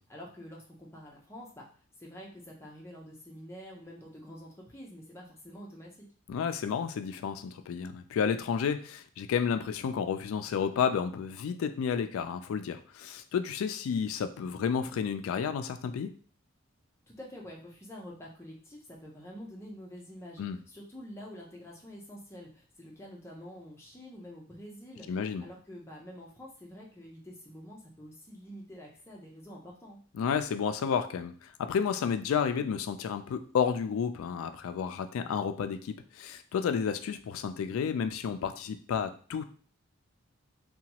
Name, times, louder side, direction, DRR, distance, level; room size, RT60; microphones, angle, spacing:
voice 1, 0.1-1.7 2.0-6.1 17.1-25.1 25.4-30.0, equal, 10° left, -3 dB, 0.6 m, -47 dB
voice 2, 6.3-16.1 20.4-20.6 25.1-25.4 30.2-39.4, left 7 dB, 85° left, 9 dB, 0.3 m, -31 dB
2.8 x 2.2 x 2.8 m, 0.43 s
head